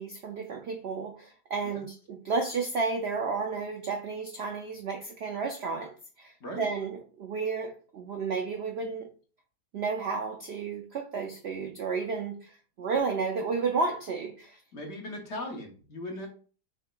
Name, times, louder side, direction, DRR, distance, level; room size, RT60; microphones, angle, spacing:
voice 1, 0.0-9.1 9.7-12.5 12.8-14.6, right 4 dB, 70° right, 0.6 m, -32 dB
voice 2, 14.7-16.3, left 1 dB, 50° left, 1.0 m, -38 dB
6.1 x 2.8 x 2.3 m
omnidirectional pair, 1.7 m